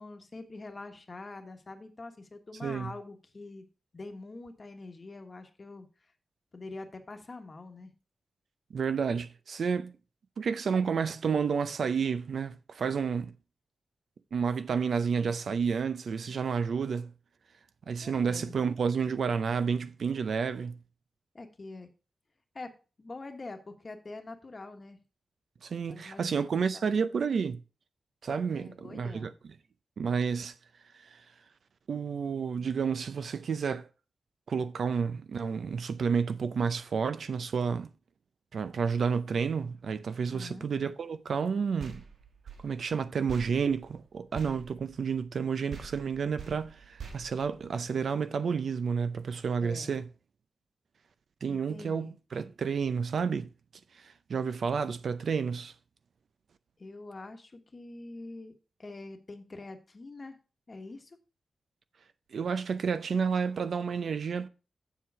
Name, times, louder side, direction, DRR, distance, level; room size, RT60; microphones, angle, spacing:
voice 1, 0.0-3.7 3.9-6.1 6.5-7.9 18.0-18.6 21.3-21.9 22.5-22.7 23.0-25.0 25.9-27.0 28.5-29.3 40.3-40.7 49.6-49.9 51.5-52.1 56.8-60.4 60.7-61.2, left 3 dB, 30° left, 1.2 m, -45 dB
voice 2, 8.7-10.0 10.4-13.3 14.3-17.1 17.9-20.8 25.6-27.6 28.2-29.3 30.0-30.5 31.9-33.9 34.5-37.9 38.5-42.0 42.6-50.0 51.4-53.5 54.0-55.7 62.3-64.5, right 6 dB, 70° right, 0.6 m, -30 dB
sound 1, 41.8-45.4 45.7-48.2, right 6 dB, 90° right, 1.5 m, -46 dB
7.6 x 7.3 x 4.7 m
wide cardioid pair, 155°, 0 cm